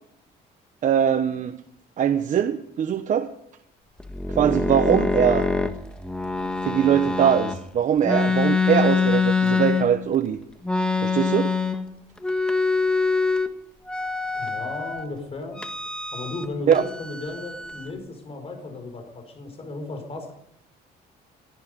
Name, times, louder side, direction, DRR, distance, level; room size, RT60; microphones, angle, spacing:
voice 1, 0.8-1.6 2.0-3.3 4.3-5.5 6.6-10.4 11.0-11.5 16.7-16.8, right 9 dB, 50° right, 8 dB, 1.0 m, -21 dB
sound 1, 4.0-7.6 8.0-10.2 10.6-11.9 12.2-13.5 13.9-15.0 15.6-16.5 16.7-17.9, left 4 dB, 5° left, 1.5 m, -24 dB
voice 2, 14.4-15.6 16.1-20.3, left 2 dB, 35° left, 5 dB, 5.6 m, -35 dB
18.5 x 13.5 x 5.3 m, 0.74 s
cardioid pair, 110°, 17 cm